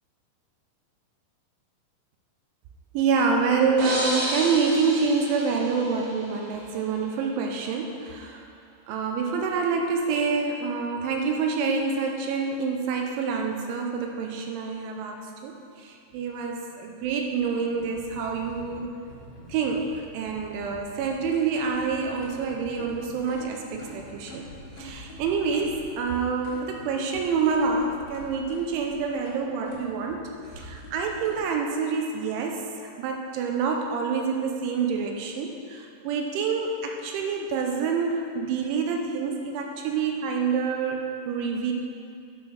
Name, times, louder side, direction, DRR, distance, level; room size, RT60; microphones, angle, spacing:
voice 1, 2.9-8.4 8.9-19.0 19.5-24.5 24.8-30.3 30.5-41.7, right 5 dB, 80° right, 2 dB, 3.0 m, -27 dB
sound 1, 3.8-6.6, right 1 dB, 60° right, 3.6 m, -32 dB
sound 2, 17.8-31.4, left 1 dB, 55° left, 2.9 m, -45 dB
10.5 x 4.5 x 6.0 m, 2.4 s
omnidirectional pair, 5.6 m